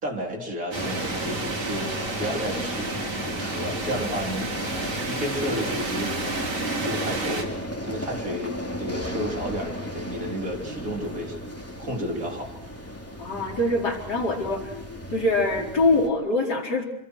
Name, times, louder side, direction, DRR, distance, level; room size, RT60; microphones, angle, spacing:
voice 1, 0.0-6.2 6.8-7.5 7.8-11.4 11.8-12.5, equal, 55° right, 2 dB, 4.2 m, -32 dB
sound 1, 0.7-16.1, equal, 10° left, 3.3 m, -34 dB
sound 2, 0.7-7.4, right 3 dB, 85° right, 3.6 m, -32 dB
voice 2, 13.2-14.7 15.1-16.8, left 2 dB, 75° left, 0 dB, 5.1 m, -24 dB
28.0 x 26.0 x 6.4 m, 0.75 s
omnidirectional pair, 1.8 m